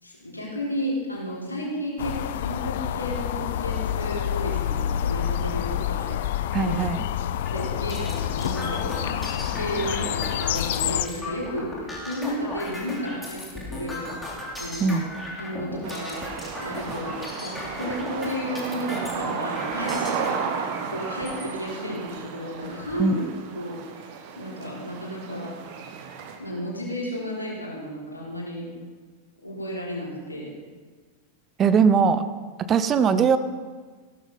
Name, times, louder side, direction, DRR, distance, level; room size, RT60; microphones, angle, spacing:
voice 1, 0.0-6.8 7.5-14.0 14.6-15.0 15.4-16.3 16.6-23.2 23.5-24.0 24.3-25.6 26.3-28.7 29.4-30.5 31.7-31.8, equal, 80° left, -5 dB, 4.1 m, -33 dB
sound 1, 2.0-11.1, left 10 dB, 55° left, 0.4 m, -28 dB
voice 2, 6.5-7.0 14.8-15.1 23.0-23.1 31.6-32.2 32.7-33.4, right 6 dB, 25° right, 12 dB, 0.7 m, -20 dB
sound 2, 7.5-20.3 21.0-21.5 22.1-22.2 22.5-23.1, left 1 dB, 10° left, 2.9 m, -37 dB
sound 3, 15.8-26.4, right 6 dB, 45° right, 1.5 m, -33 dB
15.5 x 12.0 x 4.1 m, 1.4 s
figure-of-eight pair, 90°, 0 cm